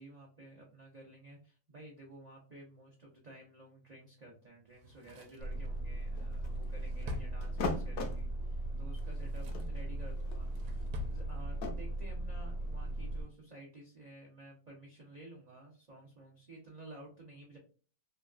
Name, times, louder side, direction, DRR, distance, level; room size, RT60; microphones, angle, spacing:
voice 1, 0.0-10.5 11.0-17.6, right 1 dB, 60° right, -3 dB, 0.4 m, -53 dB
Drawer open or close, 4.7-8.0 8.9-9.8 10.2-11.2 11.5-11.6, left 4 dB, 75° right, 1.2 m, -47 dB
sound 1, 5.4-13.2, right 1 dB, 85° left, 1.3 m, -38 dB
sound 2, 5.9-6.7 7.4-8.2 9.0-9.1 9.4-11.7, left 3 dB, 65° left, 0.9 m, -40 dB
3.1 x 2.2 x 2.4 m, 0.38 s
omnidirectional pair, 1.8 m